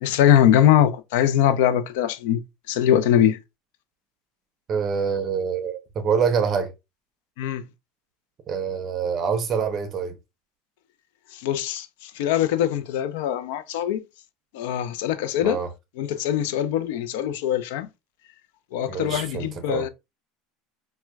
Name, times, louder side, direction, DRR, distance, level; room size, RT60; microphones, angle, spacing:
voice 1, 0.0-3.4 7.4-7.7 11.3-14.0 14.5-15.6 16.0-17.9 18.7-19.9, left 10 dB, 80° left, 0.4 m, -22 dB
voice 2, 4.7-6.7 8.5-10.2 15.4-15.7 18.9-19.8, right 6 dB, 35° right, 0.7 m, -25 dB
4.4 x 2.1 x 2.2 m
supercardioid pair, 135°, 0 cm